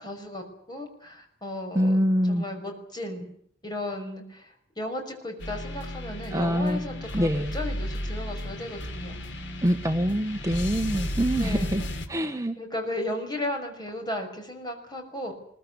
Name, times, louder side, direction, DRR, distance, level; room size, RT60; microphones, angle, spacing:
voice 1, 0.0-2.0 2.2-3.3 3.6-9.2 11.3-11.7 12.6-15.3, left 1 dB, 25° left, 4 dB, 5.8 m, -35 dB
voice 2, 1.7-2.4 6.3-6.8 7.1-7.5 9.6-11.8 12.1-12.6, equal, 20° right, 5 dB, 1.2 m, -25 dB
sound 1, 5.4-12.1, left 1 dB, 75° left, 3.3 m, -34 dB
22.5 x 19.5 x 9.6 m, 0.66 s
head